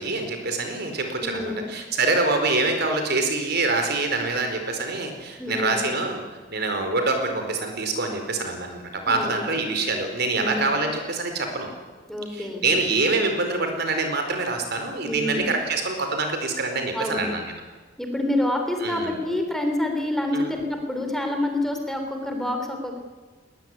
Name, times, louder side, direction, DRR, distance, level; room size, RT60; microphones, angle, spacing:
voice 1, 0.0-6.2 6.5-11.7 12.3-17.5 18.8-19.1 20.3-20.5, right 3 dB, 60° right, 5 dB, 4.7 m, -25 dB
voice 2, 1.2-1.7 5.4-5.9 9.1-9.4 10.4-10.8 12.1-12.7 15.0-15.5 16.9-17.3 18.0-23.0, left 1 dB, ahead, 3 dB, 3.4 m, -27 dB
21.0 x 19.5 x 9.8 m, 1.4 s
head